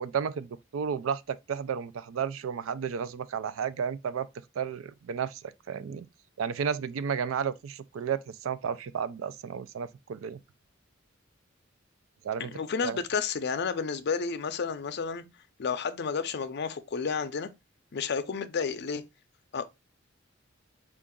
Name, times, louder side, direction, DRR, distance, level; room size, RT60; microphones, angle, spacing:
voice 1, 0.0-4.3 4.6-6.1 6.4-10.4 12.2-13.0, right 7 dB, 90° right, 0.4 m, -33 dB
voice 2, 12.4-15.2 15.6-17.5 17.9-19.0 19.5-19.7, left 5 dB, 55° left, 0.5 m, -31 dB
4.6 x 2.5 x 3.6 m
head